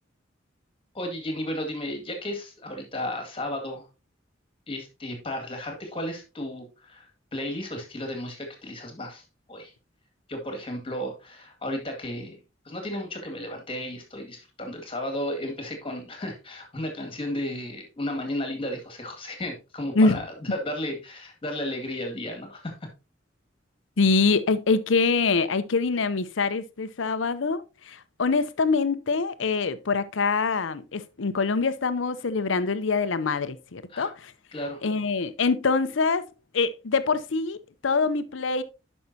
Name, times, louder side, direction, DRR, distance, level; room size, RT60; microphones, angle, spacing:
voice 1, 0.9-3.9 4.7-9.7 10.3-22.7 33.9-34.1 34.5-34.8, left 1 dB, 30° left, 2.1 m, -34 dB
voice 2, 24.0-34.3 34.8-36.3 36.5-38.6, left 4 dB, 80° left, 0.7 m, -24 dB
11.5 x 5.4 x 2.8 m
head